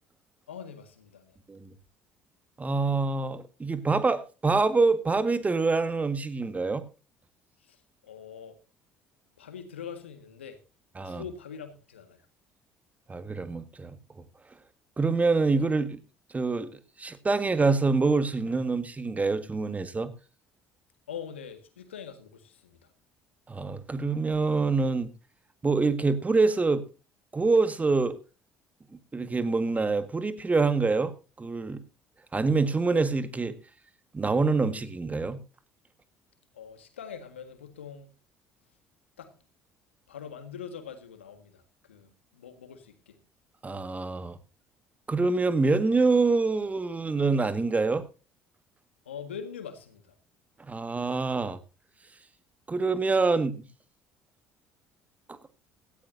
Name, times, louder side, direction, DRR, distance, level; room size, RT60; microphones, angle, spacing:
voice 1, 0.5-1.4 7.6-7.8 8.0-8.6 9.4-10.6 11.0-12.2 21.1-22.8 36.5-38.1 39.2-39.3 40.1-41.6 41.9-43.2 49.0-50.2, left 7 dB, 85° left, 1.7 m, -43 dB
voice 2, 2.6-6.8 11.0-11.2 13.1-14.0 15.0-16.0 16.3-16.7 17.0-20.1 23.5-25.1 25.6-26.8 27.3-28.2 29.1-31.8 32.3-33.5 34.1-35.4 43.6-44.4 45.1-48.0 50.7-51.6 52.7-53.7 55.3-55.4, right 3 dB, 25° right, 1.6 m, -26 dB
17.0 x 13.5 x 2.7 m
hypercardioid pair, 55°, 6 cm